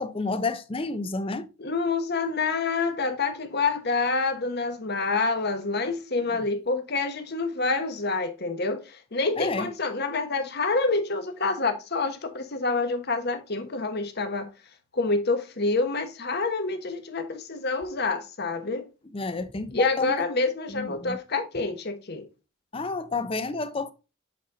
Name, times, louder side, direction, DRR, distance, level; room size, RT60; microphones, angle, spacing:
voice 1, 0.0-1.5 6.3-6.4 9.4-9.7 19.1-20.1 20.7-21.2 22.7-23.9, left 3 dB, 25° left, 0.5 m, -30 dB
voice 2, 1.6-14.5 14.9-18.9 19.7-22.2, left 3 dB, 50° left, 1.1 m, -27 dB
7.5 x 4.2 x 3.8 m
head